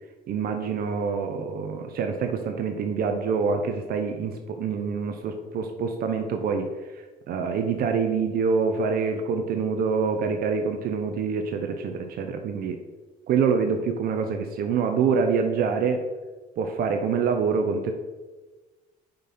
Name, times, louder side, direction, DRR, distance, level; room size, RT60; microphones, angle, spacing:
voice 1, 0.3-6.7 7.0-12.8 13.3-16.1 16.6-17.9, right 5 dB, 65° right, 5 dB, 0.7 m, -26 dB
5.3 x 5.2 x 4.2 m, 1.2 s
cardioid pair, 110°, 17 cm